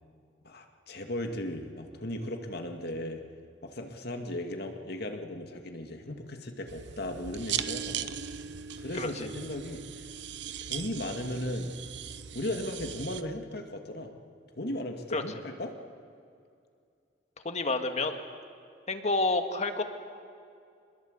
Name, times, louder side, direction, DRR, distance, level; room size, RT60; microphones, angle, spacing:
voice 1, 0.4-3.2 3.6-8.1 8.8-9.8 10.7-11.7 12.3-14.1 14.6-15.7, left 1 dB, 60° left, 4 dB, 2.3 m, -36 dB
sound 1, 6.7-13.2, right 9 dB, 70° right, 0.9 m, -38 dB
voice 2, 17.4-18.2 18.9-19.8, left 3 dB, 40° left, 6 dB, 1.9 m, -28 dB
27.0 x 21.0 x 8.2 m, 2.4 s
head